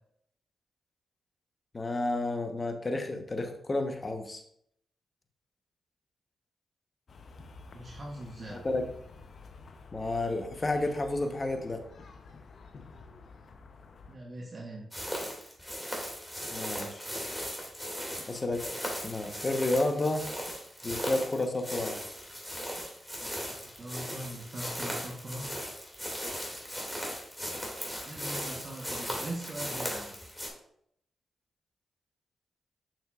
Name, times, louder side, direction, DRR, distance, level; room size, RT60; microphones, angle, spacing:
voice 1, 1.7-4.4 8.5-8.8 9.9-11.8 16.5-17.0 18.3-18.7 19.0-20.3 20.8-22.0, left 2 dB, 40° left, 5 dB, 1.1 m, -31 dB
sound 1, 7.1-14.2, left 4 dB, 65° left, 0.7 m, -50 dB
voice 2, 7.7-8.7 14.1-14.9 23.5-25.6 28.0-30.2, right 1 dB, 50° right, -2 dB, 1.1 m, -41 dB
sound 2, 14.9-30.5, equal, 5° left, 2.5 m, -38 dB
6.7 x 6.1 x 2.5 m, 0.71 s
supercardioid pair, 40°, 0 cm